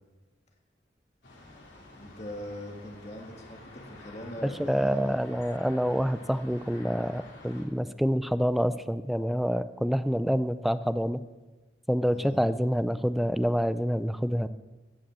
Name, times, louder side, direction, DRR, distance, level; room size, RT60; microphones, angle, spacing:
sound 1, 1.2-7.6, left 2 dB, 75° left, 3.5 m, -50 dB
voice 1, 1.9-5.2 12.0-12.5, left 1 dB, 35° left, 1 dB, 1.7 m, -42 dB
voice 2, 4.4-11.2 11.9-14.5, equal, ahead, 13 dB, 0.3 m, -27 dB
15.0 x 5.2 x 7.4 m, 1.2 s
head